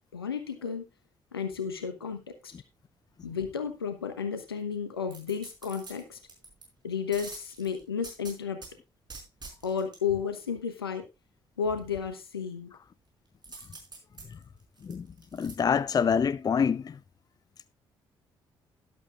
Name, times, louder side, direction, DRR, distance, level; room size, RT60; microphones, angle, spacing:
voice 1, 0.1-0.9 1.3-2.5 3.2-6.2 6.8-8.6 9.6-11.0 11.6-12.7, left 6 dB, 85° left, 1.0 m, -32 dB
sound 1, 5.1-6.6 7.1-8.7 9.1-10.0 13.4-15.5 16.0-16.1, right 4 dB, 35° right, 4.9 m, -46 dB
voice 2, 15.3-17.0, left 6 dB, 30° left, 0.5 m, -26 dB
13.0 x 11.5 x 2.4 m
figure-of-eight pair, 40°, 12 cm